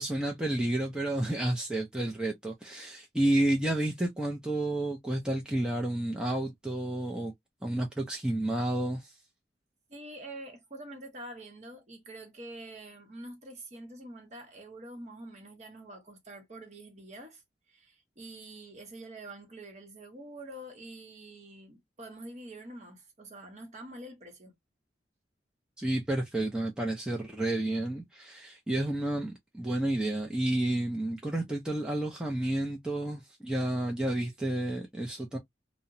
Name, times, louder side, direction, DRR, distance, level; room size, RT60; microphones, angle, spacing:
voice 1, 0.0-7.3 7.6-9.1 25.8-35.4, right 1 dB, 5° right, 0.4 m, -30 dB
voice 2, 9.9-17.4 17.7-24.5, right 1 dB, 40° right, 0.8 m, -46 dB
2.8 x 2.0 x 2.5 m
head